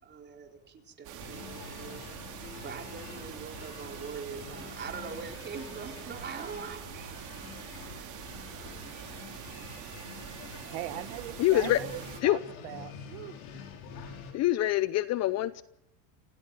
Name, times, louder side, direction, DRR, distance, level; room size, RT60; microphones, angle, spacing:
voice 1, 0.0-2.0 2.3-7.1, right 5 dB, 25° right, 4.3 m, -43 dB
sound 1, 1.0-12.2, right 11 dB, 40° right, 3.2 m, -45 dB
sound 2, 1.2-14.3, left 6 dB, 60° left, 6.1 m, -46 dB
voice 2, 10.7-13.3, right 16 dB, 60° right, 1.8 m, -40 dB
voice 3, 11.4-11.8 12.2-12.4 14.3-15.6, left 15 dB, 35° left, 0.7 m, -25 dB
27.5 x 16.5 x 7.7 m
supercardioid pair, 150°, 45 cm